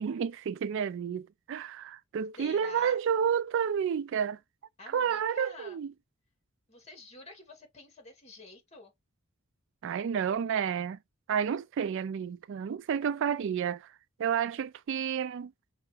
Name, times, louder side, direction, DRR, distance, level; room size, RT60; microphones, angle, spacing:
voice 1, 0.0-4.4 4.9-5.9 9.8-11.0 11.3-13.9 14.2-15.5, right 7 dB, 60° right, 0.3 m, -30 dB
voice 2, 2.4-3.0 4.8-5.8 6.7-8.9, left 3 dB, 30° left, 2.0 m, -48 dB
5.5 x 2.7 x 3.3 m
head